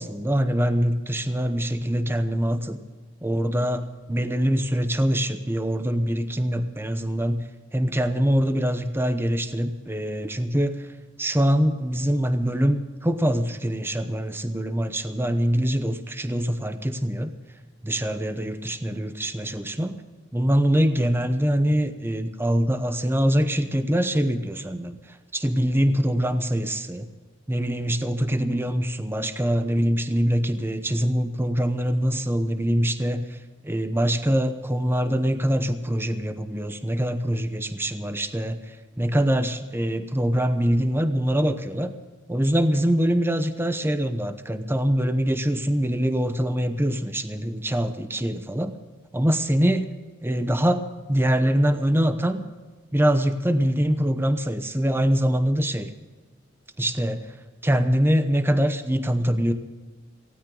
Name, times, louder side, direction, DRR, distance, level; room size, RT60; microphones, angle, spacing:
voice 1, 0.0-2.8 3.2-7.4 7.7-10.9 11.2-17.3 17.8-20.0 20.3-27.1 27.5-33.4 33.6-41.9 42.3-48.7 49.1-49.9 50.2-52.4 52.9-55.9 56.8-57.3 57.6-59.5, equal, 10° right, 9 dB, 0.9 m, -24 dB
18.5 x 16.5 x 3.9 m, 1.3 s
head